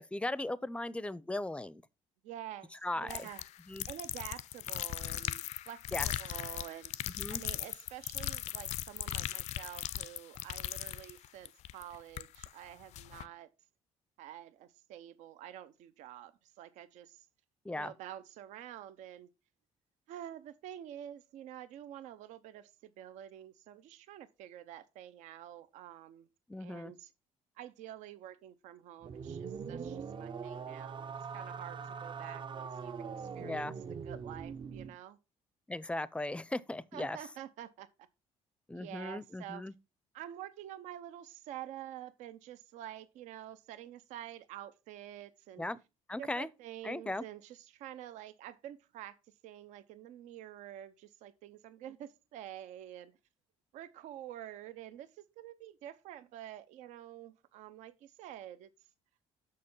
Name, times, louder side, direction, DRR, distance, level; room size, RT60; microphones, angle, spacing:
voice 1, 0.0-1.8 2.8-3.2 3.7-3.9 5.9-6.1 7.2-7.4 17.6-17.9 26.5-26.9 33.4-33.7 35.7-37.2 38.7-39.7 45.6-45.8 46.1-46.5 46.8-47.2, left 2 dB, 10° left, 0.5 m, -37 dB
voice 2, 2.2-3.4 3.9-6.9 7.3-13.5 14.2-17.3 17.7-19.3 20.1-26.3 26.6-27.1 27.6-35.2 36.9-37.9 38.7-39.6 40.1-45.7 46.2-49.2 49.4-53.1 53.7-58.7, right 12 dB, 85° right, 0.6 m, -48 dB
sound 1, 3.1-12.5 12.9-13.3, left 13 dB, 70° left, 0.4 m, -39 dB
sound 2, 29.0-35.0, right 6 dB, 40° right, 0.5 m, -42 dB
6.6 x 5.2 x 5.5 m
cardioid pair, 95°, 12 cm